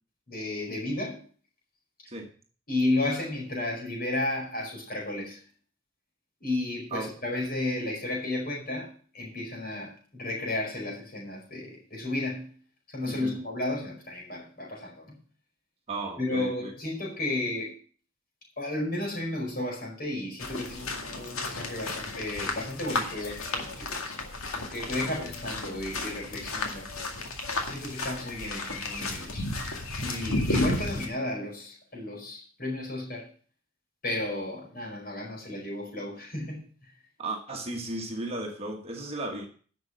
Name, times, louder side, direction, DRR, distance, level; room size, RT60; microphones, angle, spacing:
voice 1, 0.3-1.2 2.7-5.4 6.4-12.5 12.9-15.1 16.2-17.7 18.6-24.0 24.5-26.9 27.7-29.5 30.0-33.3 34.0-36.6, left 2 dB, 45° left, -2 dB, 5.0 m, -33 dB
voice 2, 15.9-16.7 25.0-25.3 37.2-39.5, right 2 dB, 30° right, 2 dB, 1.4 m, -35 dB
sound 1, 20.4-31.1, left 2 dB, 85° left, 2.1 m, -33 dB
11.0 x 6.6 x 6.3 m, 0.43 s
head